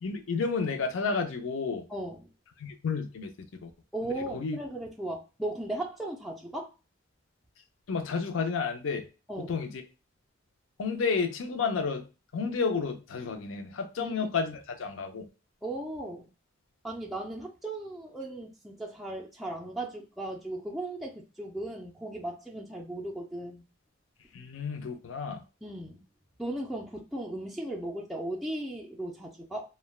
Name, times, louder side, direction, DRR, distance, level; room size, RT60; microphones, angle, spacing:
voice 1, 0.0-1.8 2.6-3.3 3.6-3.7 4.0-4.6 7.9-9.1 9.4-9.8 10.8-12.0 12.3-15.3 24.3-25.4, left 5 dB, 75° left, 5 dB, 0.5 m, -31 dB
voice 2, 1.9-2.3 3.9-6.7 9.3-9.5 14.0-14.1 15.6-16.3 16.8-23.6 25.6-26.0 26.4-29.7, right 1 dB, ahead, -3 dB, 0.3 m, -37 dB
3.2 x 2.1 x 2.3 m, 0.30 s
head